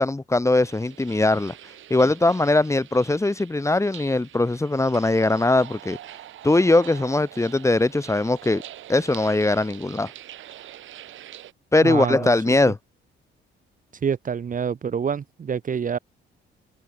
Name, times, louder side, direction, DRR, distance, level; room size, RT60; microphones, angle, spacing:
voice 1, 0.0-1.5 1.9-6.0 6.4-8.6 8.9-10.1 11.7-12.8, left 2 dB, 15° left, 1.9 m, -20 dB
sound 1, 0.6-11.5, right 12 dB, 75° right, 5.5 m, -44 dB
voice 2, 11.8-12.5 14.0-16.0, right 7 dB, 40° right, 1.3 m, -27 dB
cardioid pair, 90°, 20 cm